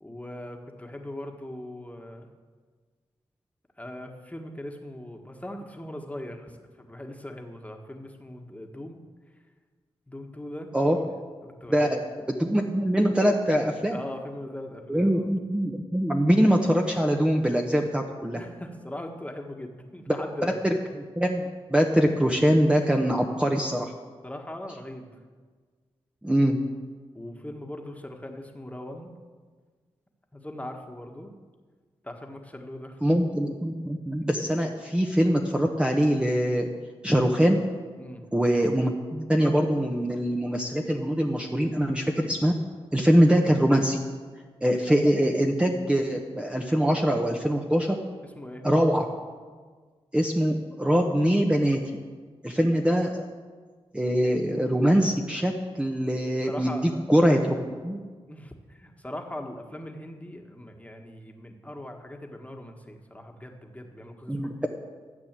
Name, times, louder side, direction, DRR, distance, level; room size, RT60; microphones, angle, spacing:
voice 1, 0.0-2.3 3.8-9.0 10.1-12.0 13.9-15.3 18.4-20.6 24.2-25.1 27.1-29.1 30.3-31.3 32.0-33.0 38.0-38.2 48.2-48.6 56.5-57.1 58.3-64.7, left 1 dB, 15° left, 3 dB, 1.6 m, -40 dB
voice 2, 11.7-12.0 12.3-14.0 14.9-18.4 20.4-20.8 21.2-23.9 26.2-26.6 33.0-36.7 37.0-37.6 38.3-42.5 42.9-44.0 44.6-48.0 48.6-49.1 50.1-51.8 52.4-53.3 53.9-58.0 64.3-64.7, equal, 10° right, 1 dB, 1.0 m, -23 dB
13.5 x 8.2 x 7.6 m, 1.5 s
cardioid pair, 75°, 11 cm